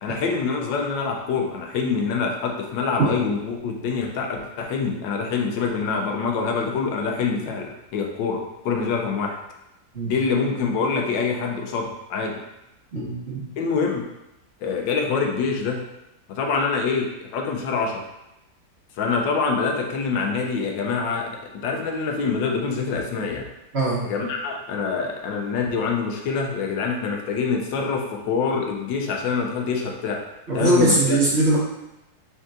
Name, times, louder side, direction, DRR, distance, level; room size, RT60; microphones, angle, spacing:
voice 1, 0.0-9.4 10.0-12.3 13.6-14.0 14.6-15.8 16.3-18.0 19.0-23.4 24.0-30.2 30.5-31.2, left 5 dB, 90° left, 2 dB, 1.4 m, -25 dB
voice 2, 12.9-13.4 23.7-24.0 30.5-31.6, right 1 dB, 40° right, -7 dB, 1.4 m, -21 dB
5.3 x 3.6 x 2.5 m, 0.91 s
omnidirectional pair, 2.0 m